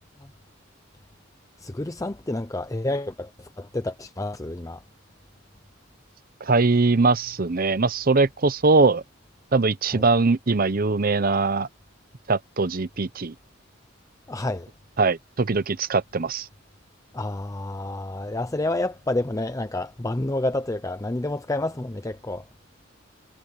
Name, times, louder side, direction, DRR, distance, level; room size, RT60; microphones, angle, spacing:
voice 1, 1.6-4.8 9.9-10.0 14.3-14.7 17.1-22.5, left 2 dB, 15° left, 0.6 m, -29 dB
voice 2, 6.4-9.0 9.5-11.7 12.3-13.3 15.0-16.5, right 3 dB, 45° right, 0.8 m, -21 dB
head